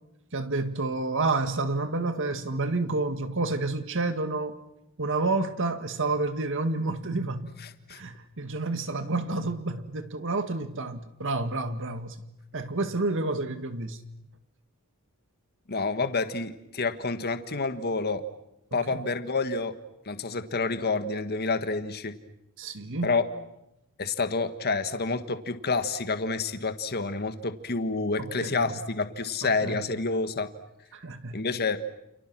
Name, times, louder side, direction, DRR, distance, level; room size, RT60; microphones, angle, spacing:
voice 1, 0.3-4.6 5.0-7.6 7.9-12.2 12.5-14.0 18.7-19.1 22.6-23.1 28.2-28.8 29.4-29.8 30.9-31.4, right 3 dB, 60° right, 1.9 m, -29 dB
voice 2, 15.7-18.2 18.7-19.7 20.0-22.1 23.0-23.3 24.0-30.5 31.3-31.8, left 3 dB, 45° left, 1.6 m, -28 dB
29.0 x 29.0 x 6.2 m
head